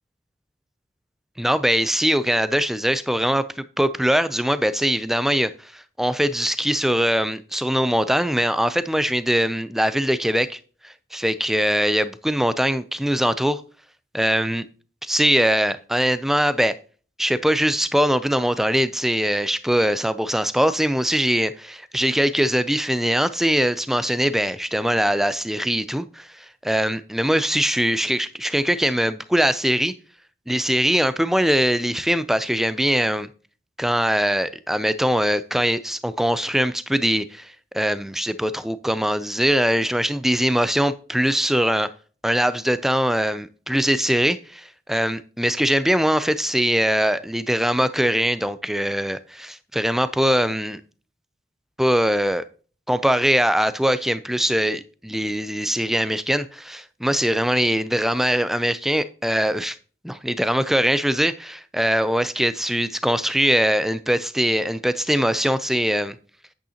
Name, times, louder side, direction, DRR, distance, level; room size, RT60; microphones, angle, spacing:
voice 1, 1.4-13.6 14.1-14.7 15.0-16.8 17.2-29.9 30.5-33.3 33.8-41.9 42.2-50.8 51.8-52.4 52.9-59.8 60.0-66.2, equal, ahead, 0.3 m, -22 dB
9.0 x 8.3 x 2.8 m
head